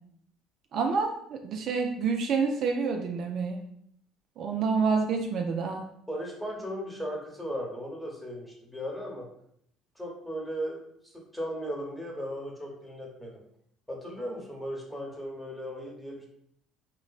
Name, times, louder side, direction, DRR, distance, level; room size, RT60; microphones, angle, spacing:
voice 1, 0.7-3.6 4.4-5.8, right 5 dB, 60° right, 3 dB, 0.3 m, -28 dB
voice 2, 6.1-9.3 10.0-13.3 13.9-16.2, equal, 5° left, -2 dB, 1.0 m, -37 dB
3.0 x 2.0 x 2.3 m, 0.70 s
hypercardioid pair, 65°, 0 cm